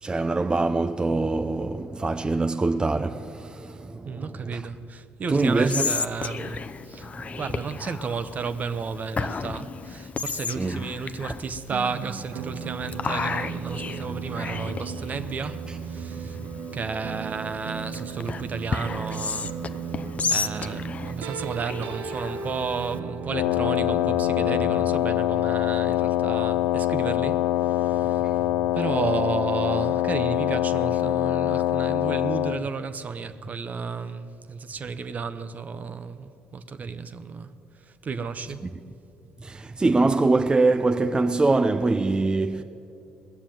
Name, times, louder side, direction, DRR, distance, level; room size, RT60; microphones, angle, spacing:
voice 1, 0.0-4.7 5.3-5.9 7.2-7.4 10.5-10.8 15.7-15.8 16.1-16.6 20.2-20.3 28.0-28.4 38.6-38.8 39.4-42.6, right 3 dB, 25° right, 0.6 m, -24 dB
voice 2, 4.0-7.1 7.4-16.4 16.7-19.6 19.9-20.0 20.3-28.2 28.7-38.6, right 5 dB, 45° right, 0.9 m, -33 dB
Whispering, 5.4-23.0, left 5 dB, 40° left, 0.7 m, -34 dB
sound 1, 11.7-25.0, right 6 dB, 70° right, 0.9 m, -36 dB
Wind instrument woodwind instrument, 23.3-32.6, left 13 dB, 85° left, 0.4 m, -24 dB
20.0 x 7.1 x 9.2 m
hypercardioid pair, 55°, 4 cm